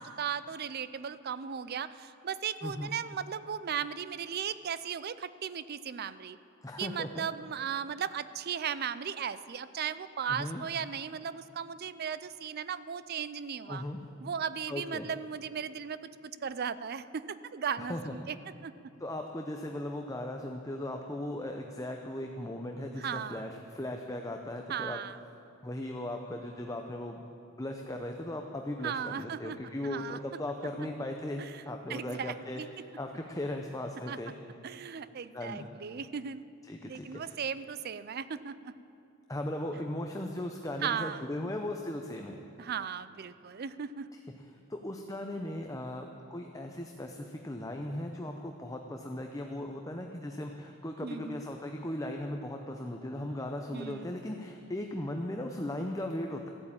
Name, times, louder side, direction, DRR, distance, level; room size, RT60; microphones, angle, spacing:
voice 1, 0.0-6.4 6.8-13.8 14.2-18.4 18.6-18.7 23.0-23.5 24.7-25.2 28.8-29.6 29.8-30.2 31.4-31.6 31.9-32.7 34.1-34.2 34.6-36.4 36.8-38.7 40.8-41.2 42.6-44.1 51.0-51.4 53.7-54.1, right 7 dB, 45° right, 15 dB, 0.4 m, -36 dB
voice 2, 6.6-7.3 10.3-10.6 13.7-14.0 14.7-15.1 17.8-18.1 19.0-25.0 25.6-27.2 27.6-32.6 33.0-34.3 35.3-35.7 36.6-37.4 39.3-42.4 44.7-56.5, left 1 dB, 15° left, 3 dB, 0.7 m, -37 dB
14.5 x 8.7 x 8.7 m, 2.7 s
head